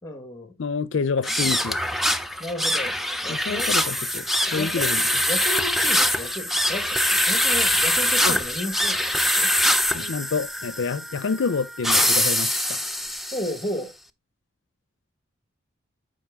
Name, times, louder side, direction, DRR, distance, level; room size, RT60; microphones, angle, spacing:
voice 1, 0.0-0.5 2.4-3.0 3.2-3.7 4.5-9.5 13.3-13.9, left 1 dB, 15° left, 1.7 m, -33 dB
voice 2, 0.6-1.8 3.3-5.0 8.2-8.4 9.9-12.8, left 5 dB, 75° left, 0.5 m, -28 dB
sound 1, 1.2-13.7, left 1 dB, ahead, 0.4 m, -23 dB
10.5 x 5.2 x 3.6 m
head